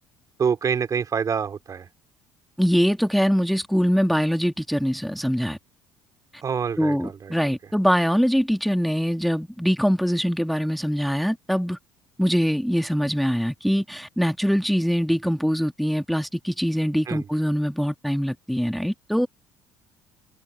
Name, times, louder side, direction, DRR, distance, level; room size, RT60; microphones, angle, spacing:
voice 1, 0.4-1.9 6.4-7.3 17.1-17.3, right 6 dB, 40° right, 3.8 m, -26 dB
voice 2, 2.6-5.6 6.8-11.8 12.2-19.3, equal, ahead, 1.9 m, -23 dB
hypercardioid pair, 65°, 9 cm